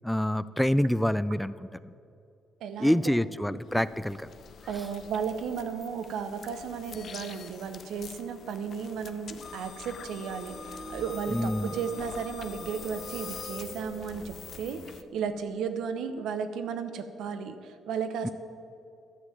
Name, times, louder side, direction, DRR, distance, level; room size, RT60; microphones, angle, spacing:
voice 1, 0.0-1.5 2.8-4.2 11.3-11.7 18.2-18.3, equal, 5° left, 16 dB, 0.3 m, -26 dB
voice 2, 2.6-3.8 4.7-18.3, right 6 dB, 80° right, 9 dB, 0.9 m, -34 dB
sound 1, 3.5-15.0, left 7 dB, 60° left, 0.7 m, -45 dB
sound 2, 10.0-14.7, right 2 dB, 55° right, 1.9 m, -46 dB
11.5 x 7.3 x 7.7 m, 2.6 s
cardioid pair, 90°, 0 cm